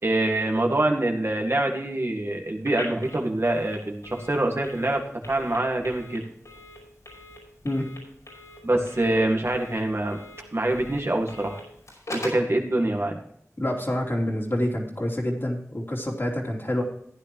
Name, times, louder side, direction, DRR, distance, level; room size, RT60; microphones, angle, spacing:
voice 1, 0.0-5.0 5.3-6.2 8.6-10.2 10.5-11.6 12.1-13.2, right 1 dB, 50° right, 2 dB, 1.9 m, -25 dB
Telephone, 2.6-12.5, left 1 dB, 80° left, 5.3 m, -42 dB
voice 2, 13.6-16.8, left 1 dB, 45° left, -1 dB, 3.2 m, -27 dB
15.0 x 9.9 x 3.1 m, 0.67 s
wide cardioid pair, 40°, 5 cm